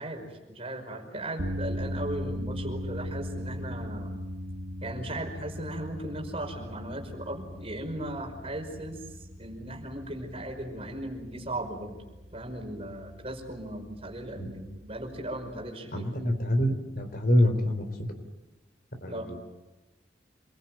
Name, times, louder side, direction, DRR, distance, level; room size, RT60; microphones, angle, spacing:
voice 1, 0.0-4.2 4.8-9.0 9.4-12.0 12.3-16.1 19.1-19.3, right 1 dB, 30° right, 3 dB, 5.3 m, -37 dB
sound 1, 1.4-15.7, equal, 80° right, 1.9 m, -39 dB
voice 2, 15.9-18.3 19.0-19.4, left 1 dB, 50° left, 7 dB, 3.8 m, -26 dB
28.0 x 22.5 x 9.1 m, 1.1 s
head